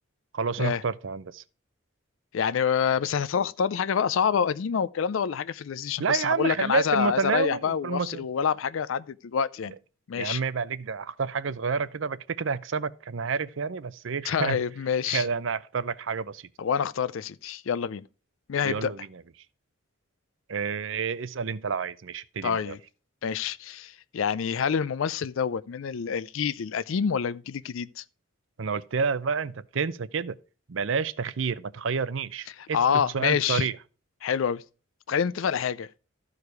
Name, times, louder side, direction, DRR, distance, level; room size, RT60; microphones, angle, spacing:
voice 1, 0.3-1.4 6.0-8.3 10.1-14.6 15.1-16.5 18.6-19.2 20.5-22.8 28.6-30.4 30.7-33.8, right 5 dB, 70° right, 0.6 m, -29 dB
voice 2, 2.3-9.7 10.1-10.4 14.3-15.2 16.6-18.0 18.5-18.9 22.4-22.8 23.2-28.0 32.7-33.7 34.2-34.6 35.1-35.9, left 7 dB, 80° left, 0.4 m, -27 dB
13.5 x 4.9 x 4.7 m
head